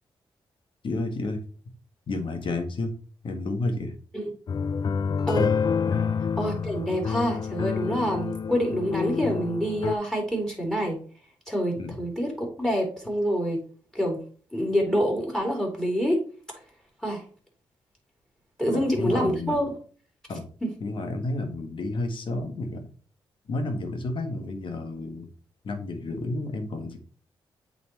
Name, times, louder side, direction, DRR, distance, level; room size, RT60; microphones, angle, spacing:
voice 1, 0.8-1.4 2.1-2.9 3.2-3.9 5.9-6.2 11.8-12.0 18.6-19.6 20.3-20.5 20.8-22.9 23.5-25.3 25.6-27.0, left 2 dB, 65° left, 5 dB, 1.6 m, -31 dB
sound 1, 4.5-10.0, left 6 dB, 50° left, 0.4 m, -28 dB
voice 2, 6.4-11.0 11.5-13.6 13.9-14.2 14.5-16.2 17.0-17.2 18.6-19.7 20.6-20.7, equal, 5° left, 1 dB, 3.6 m, -26 dB
8.3 x 4.1 x 3.1 m, 0.41 s
cardioid pair, 75°, 9 cm